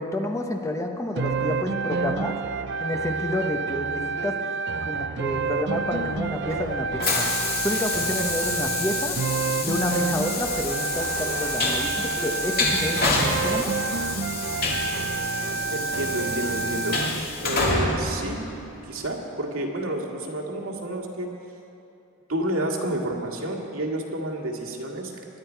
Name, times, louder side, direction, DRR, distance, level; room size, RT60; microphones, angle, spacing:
voice 1, 0.0-2.3 2.8-4.4 4.8-7.2 7.6-9.2 9.6-13.7, left 1 dB, 15° left, 3 dB, 0.9 m, -29 dB
sound 1, 1.2-17.2, right 5 dB, 50° right, 0.5 m, -29 dB
Train, 5.9-19.0, left 3 dB, 45° left, 2.2 m, -28 dB
voice 2, 15.7-17.0 17.4-18.4 18.9-21.3 22.3-25.1, right 1 dB, 85° right, 0 dB, 2.1 m, -29 dB
22.5 x 11.0 x 4.6 m, 2.7 s
head